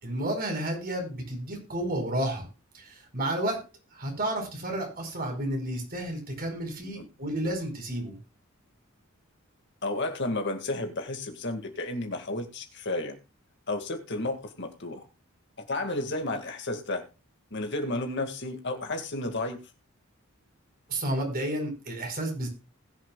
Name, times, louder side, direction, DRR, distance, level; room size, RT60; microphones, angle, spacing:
voice 1, 0.0-2.5 2.7-3.6 3.9-8.2 20.9-22.5, right 1 dB, 45° right, 2 dB, 5.0 m, -31 dB
voice 2, 9.8-13.2 13.7-15.0 15.7-17.0 17.5-19.6, left 2 dB, 55° left, 5 dB, 2.2 m, -32 dB
20.0 x 7.5 x 2.4 m, 0.32 s
head